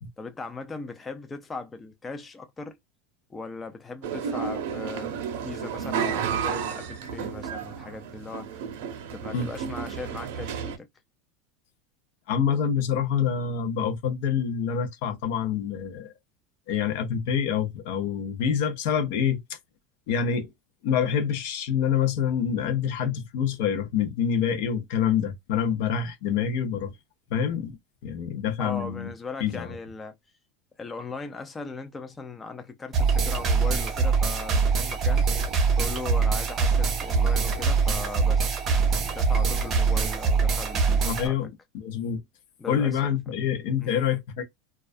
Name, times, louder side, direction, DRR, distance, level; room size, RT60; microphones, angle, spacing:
voice 1, 0.2-2.8 3.3-5.1 5.4-8.6 9.1-10.9 28.6-30.1 30.8-35.2 35.8-41.4 42.6-43.0 43.8-44.0, left 3 dB, 15° left, 0.3 m, -38 dB
sound 1, 4.0-10.8, right 7 dB, 70° right, 0.6 m, -32 dB
voice 2, 12.3-16.1 16.7-19.6 20.1-20.5 20.8-26.9 27.3-27.8 28.0-29.1 29.4-29.8 41.0-41.5 41.7-42.2 42.7-44.4, left 8 dB, 65° left, 0.7 m, -26 dB
sound 2, 32.9-41.3, right 5 dB, 25° right, 0.6 m, -23 dB
2.3 x 2.2 x 2.4 m
supercardioid pair, 155°, 0 cm